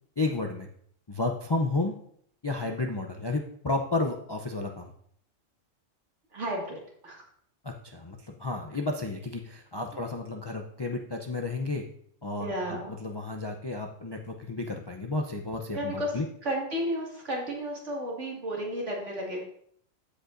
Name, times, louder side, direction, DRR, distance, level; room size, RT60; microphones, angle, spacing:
voice 1, 0.2-0.7 1.1-1.9 2.4-4.9 7.6-11.8 12.2-16.3, left 2 dB, 30° left, 2 dB, 0.4 m, -32 dB
voice 2, 6.3-7.2 12.4-13.0 15.7-19.4, equal, 65° right, -3 dB, 2.5 m, -33 dB
15.0 x 5.2 x 2.6 m, 0.65 s
omnidirectional pair, 1.3 m